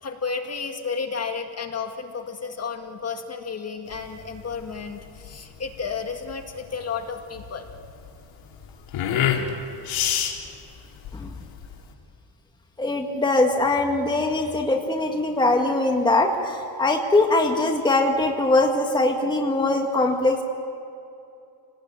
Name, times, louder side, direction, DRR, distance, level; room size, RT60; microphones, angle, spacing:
voice 1, 0.0-7.7, left 5 dB, 30° left, 4 dB, 2.0 m, -32 dB
sound 1, 3.9-11.9, left 9 dB, 70° left, 3.2 m, -29 dB
voice 2, 12.8-20.4, left 2 dB, 10° left, 2 dB, 1.7 m, -22 dB
28.0 x 19.0 x 9.0 m, 2.6 s
cardioid pair, 145°, 48 cm